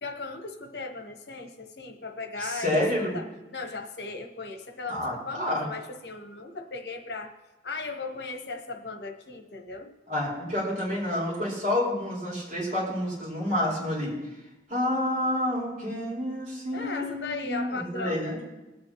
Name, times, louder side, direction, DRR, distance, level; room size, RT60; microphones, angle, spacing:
voice 1, 0.0-7.3 7.6-9.9 16.7-18.2, left 3 dB, 75° left, 4 dB, 1.1 m, -37 dB
voice 2, 2.4-3.2 4.9-5.7 10.1-14.2 14.7-18.4, left 1 dB, 45° right, -6 dB, 4.8 m, -29 dB
20.5 x 8.6 x 3.1 m, 1.0 s
head